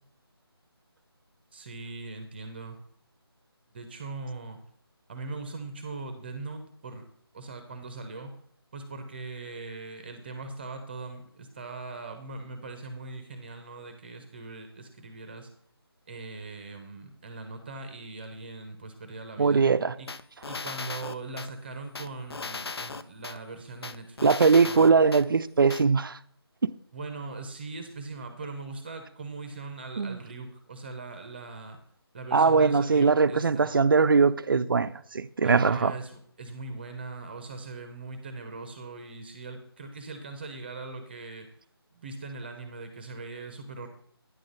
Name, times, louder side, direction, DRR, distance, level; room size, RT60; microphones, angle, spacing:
voice 1, 1.5-2.8 3.7-4.6 5.1-7.0 7.3-8.3 8.7-15.5 16.1-19.6 20.0-20.1 20.5-25.0 26.9-31.8 32.1-33.8 35.4-41.5 41.9-43.9, right 3 dB, 25° right, 0.7 m, -40 dB
voice 2, 19.4-19.9 24.2-26.2 26.6-26.7 30.0-30.2 32.3-35.9, right 5 dB, 55° right, 0.4 m, -21 dB
sound 1, 20.1-21.5 21.9-23.4 23.8-25.2 25.7-25.8, left 4 dB, 70° left, 0.5 m, -37 dB
9.4 x 3.9 x 6.4 m
figure-of-eight pair, 160°, 14 cm